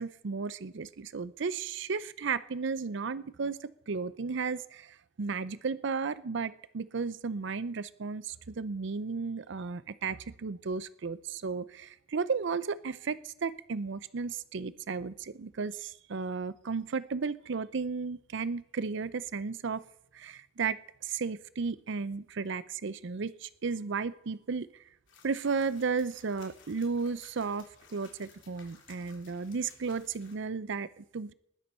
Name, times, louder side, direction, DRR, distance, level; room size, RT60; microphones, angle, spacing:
voice 1, 0.0-19.8 20.1-24.7 25.2-31.3, right 5 dB, 65° right, 17 dB, 0.6 m, -34 dB
sound 1, 25.1-30.4, left 5 dB, 70° left, 3.2 m, -58 dB
20.0 x 10.5 x 4.4 m, 0.76 s
head